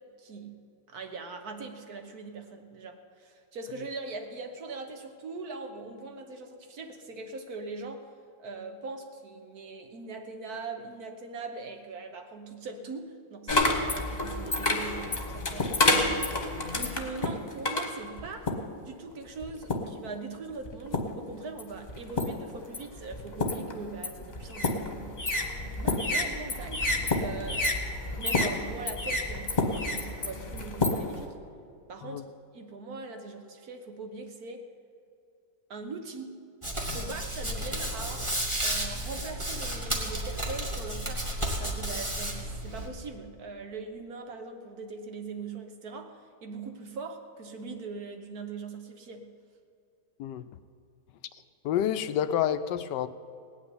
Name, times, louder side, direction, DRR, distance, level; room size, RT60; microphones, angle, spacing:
voice 1, 0.2-0.6 0.9-8.1 8.4-16.3 16.7-18.5 18.8-25.2 25.7-31.3 31.9-32.2 32.5-34.7 35.7-36.4 36.9-38.3 38.6-41.3 41.6-49.3, right 3 dB, 60° right, 5 dB, 1.6 m, -41 dB
sound 1, 13.5-18.8 19.4-20.0 20.7-21.2 21.6-31.2, left 2 dB, 25° left, 1.3 m, -29 dB
Hands, 36.6-42.9, right 1 dB, 15° right, 2.2 m, -32 dB
voice 2, 51.6-53.1, left 10 dB, 80° left, 11 dB, 1.3 m, -28 dB
18.0 x 6.2 x 9.6 m, 2.5 s
omnidirectional pair, 1.9 m